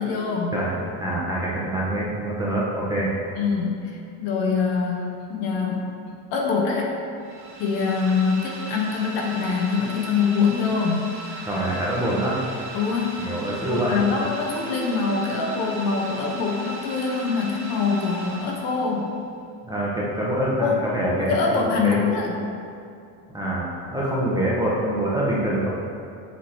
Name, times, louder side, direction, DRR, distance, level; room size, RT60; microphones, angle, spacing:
voice 1, 0.0-0.5 3.4-5.9 6.3-6.9 7.6-11.1 12.7-13.3 13.7-19.1 20.6-20.8 21.1-22.4, left 5 dB, 65° left, -1 dB, 1.2 m, -24 dB
voice 2, 0.5-3.1 11.5-12.4 13.2-14.0 19.6-22.0 23.3-25.7, right 1 dB, 10° right, -6 dB, 1.0 m, -25 dB
sound 1, 7.2-19.1, right 2 dB, 60° right, 1.4 m, -38 dB
7.5 x 3.0 x 4.3 m, 2.5 s
cardioid pair, 115°, 46 cm